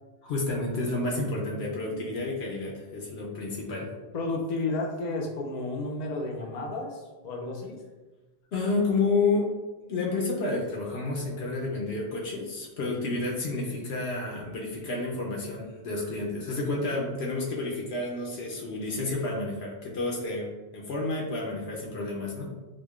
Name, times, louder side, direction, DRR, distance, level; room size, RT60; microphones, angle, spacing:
voice 1, 0.2-3.9 8.5-9.4 9.8-20.5 20.7-22.5, left 3 dB, 80° left, -2 dB, 0.9 m, -30 dB
voice 2, 1.1-1.4 1.9-2.1 4.1-7.8, left 2 dB, 55° left, 1 dB, 0.5 m, -32 dB
4.9 x 2.2 x 2.3 m, 1.2 s
omnidirectional pair, 1.1 m